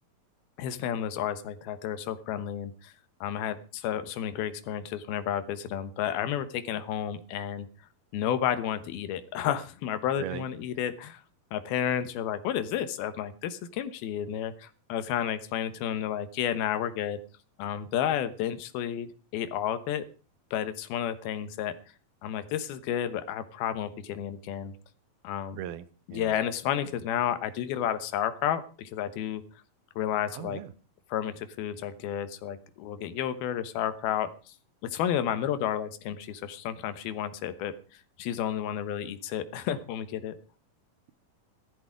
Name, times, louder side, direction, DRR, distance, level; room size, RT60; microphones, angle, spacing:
voice 1, 0.6-2.9 3.2-7.7 8.1-11.2 11.5-17.2 17.6-20.1 20.5-21.7 22.2-24.7 25.2-25.6 26.1-29.4 30.0-30.6 31.1-34.3 34.8-37.7 38.2-40.3, left 10 dB, 85° left, 12 dB, 3.1 m, -31 dB
voice 2, 25.6-26.4 30.3-30.7, right 11 dB, 85° right, 15 dB, 2.8 m, -38 dB
15.0 x 13.5 x 4.7 m, 0.36 s
omnidirectional pair, 4.3 m